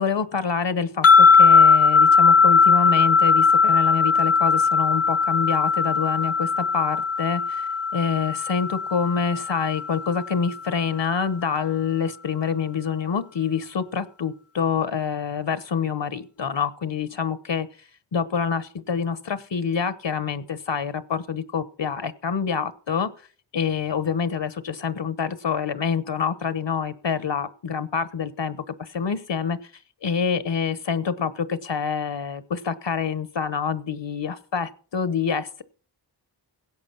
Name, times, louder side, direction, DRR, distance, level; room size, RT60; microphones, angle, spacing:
voice 1, 0.0-17.7 18.1-23.1 23.5-29.6 30.0-35.6, left 6 dB, 75° left, 15 dB, 1.1 m, -26 dB
sound 1, 1.0-10.3, left 5 dB, 35° left, 0.5 m, -18 dB
17.0 x 8.2 x 5.7 m, 0.42 s
wide cardioid pair, 85°, 43 cm